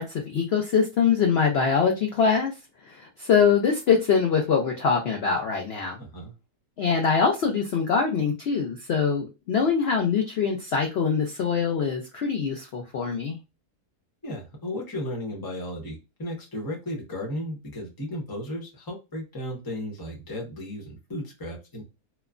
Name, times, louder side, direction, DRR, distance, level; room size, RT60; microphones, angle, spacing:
voice 1, 0.0-2.5 3.0-6.0 6.8-13.4, left 6 dB, 80° left, 0.5 m, -23 dB
voice 2, 6.0-6.3 14.2-21.8, left 1 dB, 20° left, 0.7 m, -35 dB
3.0 x 2.1 x 2.4 m
omnidirectional pair, 1.7 m